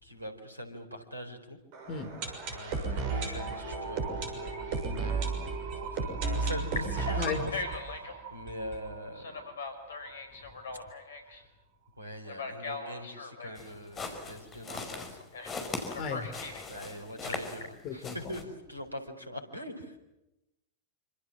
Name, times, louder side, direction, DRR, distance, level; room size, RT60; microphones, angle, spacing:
voice 1, 0.0-1.6 2.5-7.5 7.9-9.3 12.0-15.2 16.7-20.0, equal, 85° right, 4.3 m, -43 dB
sound 1, 1.7-9.5 9.8-9.9 10.0-10.1 10.7-10.8, right 4 dB, 45° right, 6.5 m, -34 dB
Telephone, 3.6-5.9 6.4-8.2 9.2-11.4 12.2-13.6 15.3-15.6 15.9-16.7 17.1-17.7, left 2 dB, 65° left, 5.0 m, -40 dB
voice 2, 7.2-7.5 16.0-16.3 17.8-18.1, left 5 dB, 40° left, 3.5 m, -34 dB
sound 2, 13.5-17.7 18.0-18.4, left 3 dB, 25° left, 5.4 m, -40 dB
26.5 x 26.0 x 7.6 m
figure-of-eight pair, 90°, 0 cm